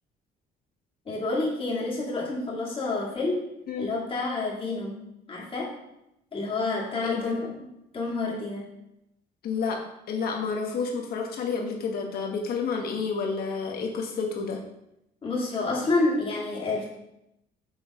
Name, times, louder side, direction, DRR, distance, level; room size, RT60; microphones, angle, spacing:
voice 1, 1.1-3.5 3.8-5.0 5.3-5.8 6.3-7.7 7.9-8.7 15.2-16.9, left 3 dB, 30° left, -4 dB, 2.1 m, -29 dB
voice 2, 7.0-7.5 9.4-9.8 10.1-14.6, left 5 dB, 65° left, 2 dB, 1.3 m, -30 dB
6.3 x 3.4 x 4.7 m, 0.84 s
cardioid pair, 110°, 17 cm